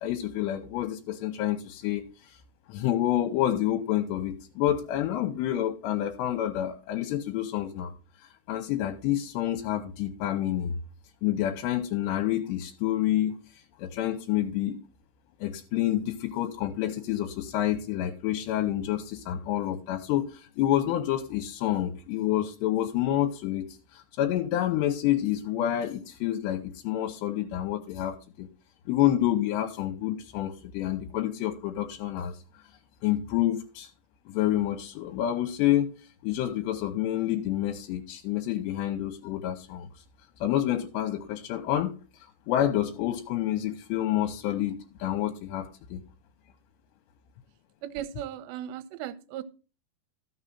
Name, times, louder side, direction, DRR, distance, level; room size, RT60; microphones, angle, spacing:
voice 1, 0.0-2.4 2.7-7.9 8.5-10.8 11.2-13.4 13.8-14.8 15.4-28.5 28.9-32.4 33.0-33.9 34.3-35.9 36.2-39.9 40.4-46.0, left 12 dB, 80° left, 4 dB, 3.0 m, -28 dB
voice 2, 47.8-49.4, right 11 dB, 80° right, 14 dB, 3.0 m, -37 dB
13.5 x 6.5 x 4.3 m, 0.35 s
omnidirectional pair, 5.2 m